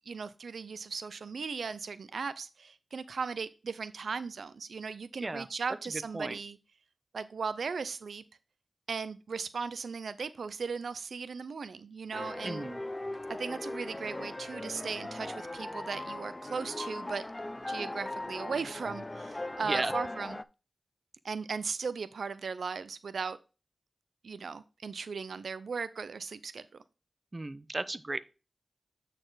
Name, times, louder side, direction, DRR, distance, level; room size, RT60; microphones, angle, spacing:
voice 1, 0.1-6.6 7.1-8.2 8.9-12.7 13.3-17.2 17.7-20.4 21.2-23.4 24.2-26.6, right 5 dB, 85° right, 0.4 m, -37 dB
sound 1, 12.1-20.4, left 2 dB, 25° left, 0.4 m, -39 dB
voice 2, 12.4-12.8 19.6-19.9 27.3-28.2, right 2 dB, 35° right, 0.6 m, -34 dB
9.0 x 4.1 x 3.8 m
cardioid pair, 55°, 0 cm